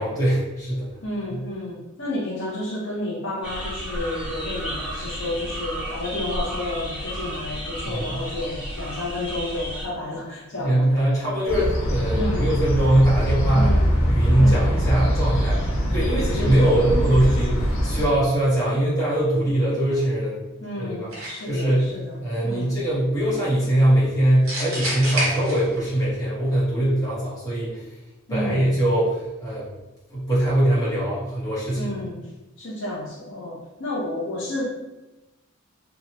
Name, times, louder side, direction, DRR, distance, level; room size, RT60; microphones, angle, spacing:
voice 1, 0.0-0.9 1.3-1.4 7.9-8.2 10.6-13.7 14.1-20.4 20.8-21.1 21.5-21.9 22.2-28.0 28.3-29.7 30.1-31.9, right 1 dB, 15° left, -9 dB, 1.0 m, -22 dB
voice 2, 1.0-11.0 12.2-12.5 13.5-13.9 14.4-14.7 16.4-16.6 20.6-22.8 28.3-28.7 31.8-32.2 32.6-34.6, left 1 dB, 60° left, -4 dB, 0.6 m, -31 dB
sound 1, 3.4-9.9, equal, 5° right, 0.7 m, -32 dB
sound 2, 11.5-18.1, equal, 80° left, 1.1 m, -22 dB
sound 3, 21.1-21.6 24.5-26.0, right 1 dB, 65° right, 1.1 m, -28 dB
2.9 x 2.4 x 2.8 m, 1.0 s
head